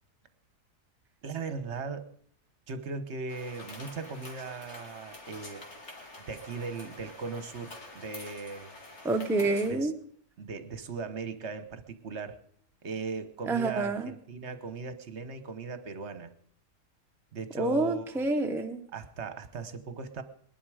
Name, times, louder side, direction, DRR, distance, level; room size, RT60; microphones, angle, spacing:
voice 1, 1.2-2.1 2.7-5.7 6.2-8.7 9.5-9.9 10.4-12.4 12.8-16.3 17.3-18.2 18.9-20.2, right 4 dB, 50° right, 10 dB, 1.3 m, -38 dB
sound 1, 3.3-9.7, left 2 dB, 45° left, 2.6 m, -47 dB
voice 2, 9.0-9.9 13.5-14.1 17.5-18.8, right 3 dB, ahead, 5 dB, 0.7 m, -28 dB
20.5 x 11.0 x 4.9 m, 0.63 s
omnidirectional pair, 1.7 m